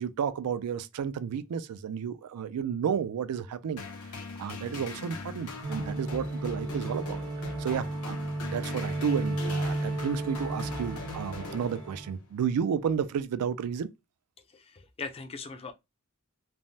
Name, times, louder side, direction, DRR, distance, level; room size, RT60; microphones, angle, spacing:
voice 1, 0.0-3.8 4.4-7.2 7.6-13.9, right 7 dB, 85° right, 0.3 m, -32 dB
sound 1, 3.8-12.3, left 3 dB, 85° left, 0.8 m, -41 dB
sound 2, 5.6-12.1, right 2 dB, 65° right, 1.0 m, -34 dB
voice 2, 14.5-15.7, left 4 dB, 25° left, 0.4 m, -40 dB
3.3 x 2.0 x 2.6 m
head